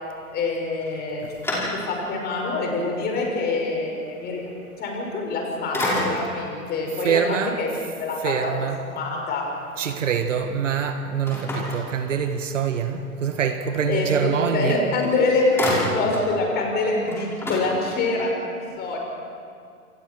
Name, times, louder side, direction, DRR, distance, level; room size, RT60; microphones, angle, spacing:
voice 1, 0.3-1.2 1.7-4.5 4.8-7.7 8.0-8.5 8.8-9.4 13.9-19.0, left 3 dB, 20° left, 6.1 m, -25 dB
sound 1, 0.8-2.2 2.7-2.8 5.1-5.4 5.7-6.5 11.3-12.5 14.6-14.7 15.0-16.3 16.7-16.8 17.0-18.3, left 1 dB, 5° left, 5.5 m, -29 dB
voice 2, 7.0-7.6 8.2-8.8 9.8-14.9, right 7 dB, 55° right, 1.7 m, -25 dB
28.5 x 28.0 x 4.8 m
figure-of-eight pair, 115°, 44 cm